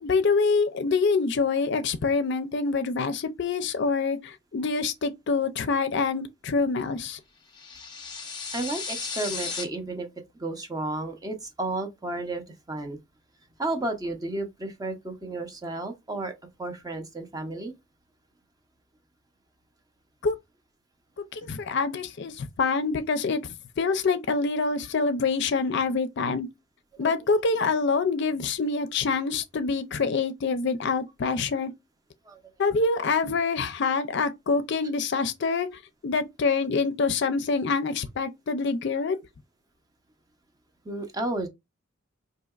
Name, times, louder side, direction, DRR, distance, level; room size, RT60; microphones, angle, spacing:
voice 1, 0.0-7.2 20.2-20.4 21.3-26.5 27.0-31.7 32.6-35.7 36.0-39.2, left 4 dB, 60° left, 0.5 m, -26 dB
sound 1, 7.5-9.6, left 5 dB, 20° left, 0.8 m, -35 dB
voice 2, 8.5-10.1 10.4-13.0 13.6-16.3 16.6-17.7 27.0-27.1 32.3-32.4 40.9-41.5, right 2 dB, 20° right, 0.6 m, -32 dB
4.0 x 2.7 x 2.3 m
head